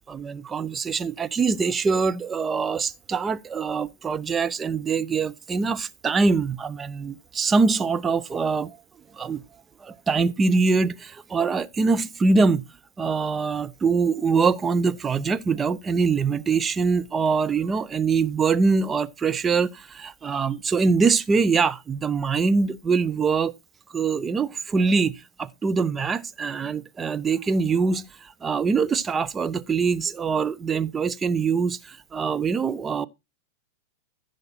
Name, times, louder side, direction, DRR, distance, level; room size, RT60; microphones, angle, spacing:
voice 1, 0.1-8.8 9.1-9.4 9.8-12.6 13.0-23.5 23.9-33.1, right 4 dB, 20° right, 0.7 m, -23 dB
14.5 x 6.5 x 4.2 m
figure-of-eight pair, 90°, 0 cm